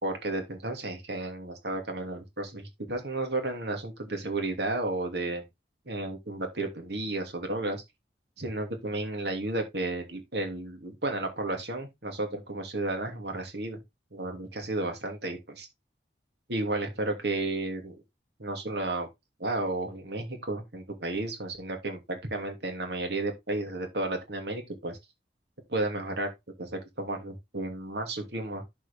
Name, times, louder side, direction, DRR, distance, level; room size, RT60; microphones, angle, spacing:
voice 1, 0.0-5.4 5.9-7.8 8.4-13.8 14.1-15.7 16.5-18.0 18.4-19.1 19.4-25.0 25.7-26.3 26.6-28.6, right 2 dB, 70° right, 2.8 m, -33 dB
11.0 x 4.8 x 3.5 m
head